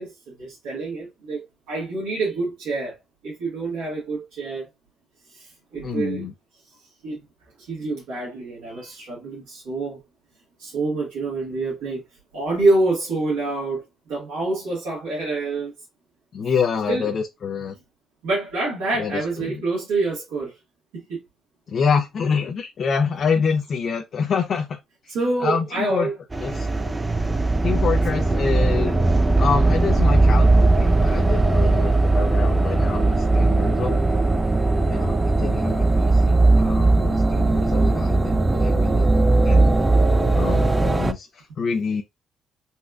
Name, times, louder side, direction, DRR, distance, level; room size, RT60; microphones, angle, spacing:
voice 1, 0.0-3.0 3.2-4.7 5.3-6.2 6.7-6.8 7.0-7.2 7.6-10.0 10.6-12.0 12.3-15.7 16.9-17.1 18.2-20.6 20.9-21.2 25.1-26.1 26.8-27.0, right 3 dB, 80° right, 1.4 m, -26 dB
voice 2, 5.8-6.3 16.3-17.7 19.0-19.6 21.7-24.8 25.4-26.1 26.4-26.7 27.6-29.0 29.4-34.0 34.8-39.1 39.4-39.7 40.3-42.0, left 6 dB, 55° left, 0.5 m, -26 dB
sound 1, 26.3-41.1, right 2 dB, 20° right, 0.5 m, -19 dB
4.1 x 2.3 x 2.3 m
supercardioid pair, 60°, 0 cm